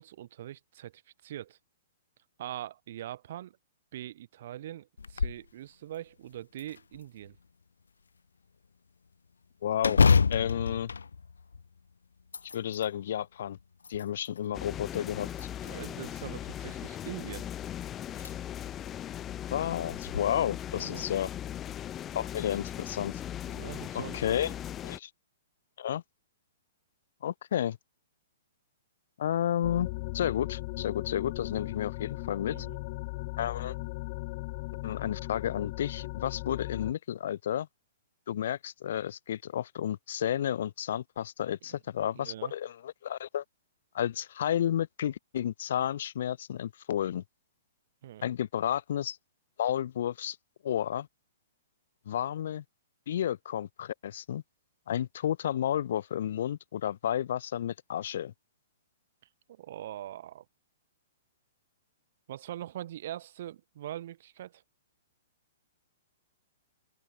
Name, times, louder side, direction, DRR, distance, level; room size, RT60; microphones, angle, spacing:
voice 1, 0.0-1.6 2.4-3.6 3.9-7.4 15.6-17.5 20.7-21.0 23.5-24.5 32.5-32.8 42.2-42.5 48.0-48.2 59.5-60.4 62.3-64.6, right 12 dB, 55° right, 2.5 m, -42 dB
sound 1, 5.0-5.5 5.9-6.0 6.6-7.4 9.8-11.8 12.2-12.9 13.6-14.4 15.3-16.0 17.5-17.6 18.1-18.3 18.8-18.9 19.9-20.2, left 5 dB, 85° left, 2.0 m, -27 dB
voice 2, 9.6-10.0 10.3-10.9 12.5-13.6 13.9-15.3 19.5-21.3 22.1-23.1 23.9-24.5 24.8-25.1 25.8-26.0 27.2-27.8 29.2-29.9 30.1-32.7 33.4-33.7 34.8-37.7 38.3-43.4 43.9-47.2 48.2-49.2 49.6-50.4 50.6-51.1 52.1-52.6 53.1-54.4 54.9-58.3, left 10 dB, 65° left, 4.0 m, -31 dB
sound 2, 14.5-25.0, left 11 dB, 25° left, 5.4 m, -39 dB
sound 3, 29.6-36.9, left 24 dB, 45° left, 3.9 m, -38 dB
open air
hypercardioid pair, 125°, 0 cm